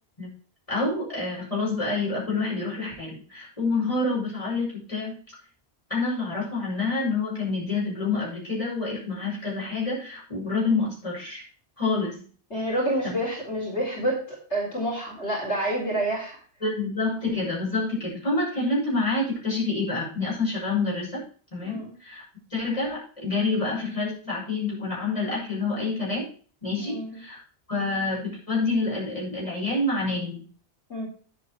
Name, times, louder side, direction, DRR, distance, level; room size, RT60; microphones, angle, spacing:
voice 1, 0.7-5.1 5.9-11.4 11.8-12.2 13.0-13.1 16.6-21.2 21.5-22.2 22.5-26.3 26.6-27.4 27.7-30.4, left 3 dB, 30° left, -6 dB, 6.9 m, -27 dB
voice 2, 12.5-16.4 21.6-21.9 26.8-27.2 30.9-31.1, right 1 dB, 80° left, -3 dB, 4.5 m, -28 dB
9.9 x 8.5 x 4.7 m, 0.42 s
omnidirectional pair, 1.2 m